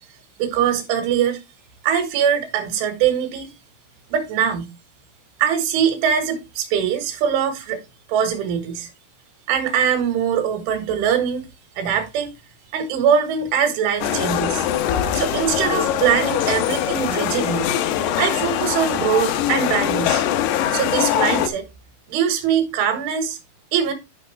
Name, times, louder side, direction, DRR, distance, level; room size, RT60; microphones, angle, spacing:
voice 1, 0.4-1.4 1.8-3.5 4.1-4.7 5.4-7.8 8.1-8.9 9.5-11.5 11.8-12.3 12.7-14.7 15.1-17.7 18.2-20.2 20.7-21.7 22.1-23.4 23.7-23.9, right 8 dB, 80° right, 4.0 m, -22 dB
sound 1, 14.0-21.5, left 10 dB, 80° left, 2.3 m, -22 dB
11.5 x 5.4 x 3.2 m
omnidirectional pair, 5.5 m